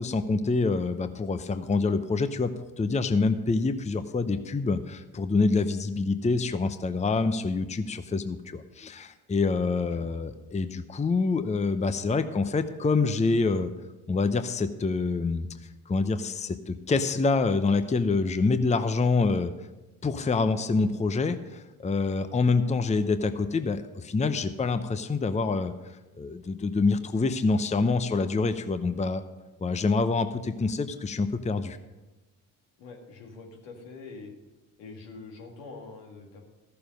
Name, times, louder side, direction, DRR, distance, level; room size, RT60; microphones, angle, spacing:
voice 1, 0.0-2.5 2.8-13.7 14.1-15.5 15.9-19.5 20.0-25.7 26.2-29.2 29.6-31.8, left 4 dB, 15° left, 11 dB, 0.7 m, -26 dB
voice 2, 32.8-34.3 34.8-36.5, left 4 dB, 80° left, 1 dB, 1.9 m, -44 dB
14.0 x 6.9 x 5.2 m, 1.1 s
hypercardioid pair, 50°, 43 cm